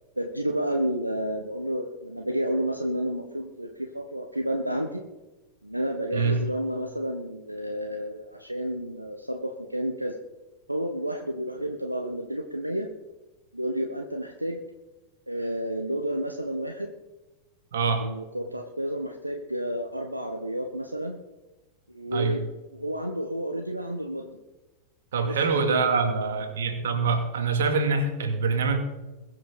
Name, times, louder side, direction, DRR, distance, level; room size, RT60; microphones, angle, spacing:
voice 1, 0.2-5.0 5.6-10.2 10.7-12.9 13.5-14.6 15.3-16.9 18.0-21.2 21.9-24.4 25.3-26.4, equal, 85° right, 4 dB, 1.3 m, -31 dB
voice 2, 17.7-18.1 22.1-22.4 25.1-28.8, right 4 dB, 60° right, 6 dB, 2.6 m, -25 dB
21.5 x 7.7 x 5.4 m, 1.1 s
figure-of-eight pair, 90°, 0 cm